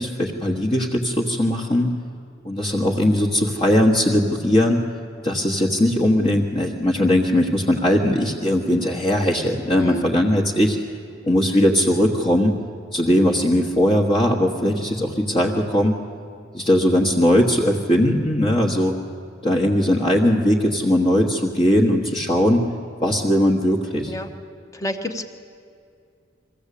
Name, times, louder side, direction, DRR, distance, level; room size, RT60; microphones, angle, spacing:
voice 1, 0.0-1.9 2.4-4.8 5.2-10.8 11.2-12.5 12.9-16.0 16.5-19.0 19.4-22.7 23.0-24.1, left 1 dB, 30° left, -3 dB, 1.4 m, -19 dB
voice 2, 24.7-25.2, left 1 dB, 15° left, 7 dB, 1.1 m, -28 dB
22.5 x 15.5 x 8.5 m, 2.4 s
head